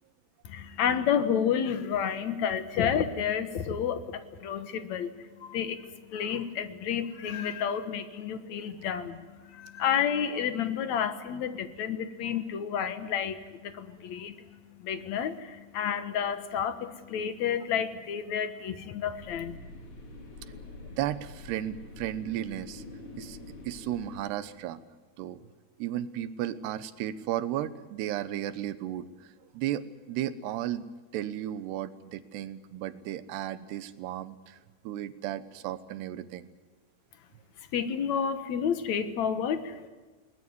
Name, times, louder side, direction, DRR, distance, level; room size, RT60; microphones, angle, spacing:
voice 1, 0.4-19.5 37.7-39.9, left 8 dB, 60° left, 11 dB, 2.0 m, -30 dB
sound 1, 19.1-24.2, left 2 dB, 35° left, 3.4 m, -46 dB
voice 2, 21.0-22.8 23.2-23.4 23.6-24.8 25.2-25.4 25.8-30.8 31.1-34.6 34.8-36.5, right 12 dB, 80° right, 14 dB, 3.1 m, -34 dB
21.5 x 20.0 x 9.6 m, 1.3 s
omnidirectional pair, 4.7 m